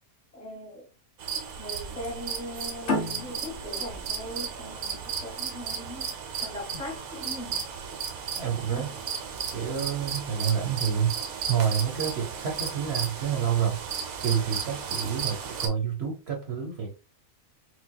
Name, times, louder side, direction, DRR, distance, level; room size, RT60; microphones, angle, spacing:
voice 1, 0.3-0.9 1.6-6.1 6.4-7.6 8.7-8.9, equal, 30° left, 1.2 m, -40 dB
sound 1, 1.2-15.7, right 6 dB, 85° right, 1.2 m, -34 dB
sound 2, 2.9-6.1, left 2 dB, 60° left, 1.1 m, -33 dB
voice 2, 8.4-8.9 9.5-11.1 11.5-13.8 14.2-16.9, right 8 dB, 55° right, 0.9 m, -28 dB
4.1 x 2.2 x 2.3 m
omnidirectional pair, 1.5 m